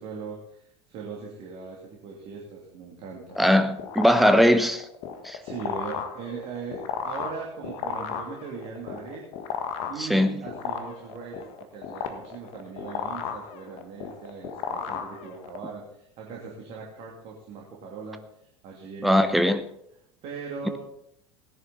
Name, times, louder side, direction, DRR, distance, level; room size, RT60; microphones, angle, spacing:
voice 1, 0.0-3.4 5.4-9.2 9.9-18.2 18.6-19.5 20.2-20.8, right 5 dB, 45° right, 2.8 m, -39 dB
sound 1, 3.3-15.7, left 8 dB, 45° left, 1.6 m, -34 dB
voice 2, 3.4-4.9 5.2-5.4 10.0-10.4 19.0-19.6, equal, ahead, 0.9 m, -20 dB
17.5 x 11.0 x 4.1 m
figure-of-eight pair, 75°, 14 cm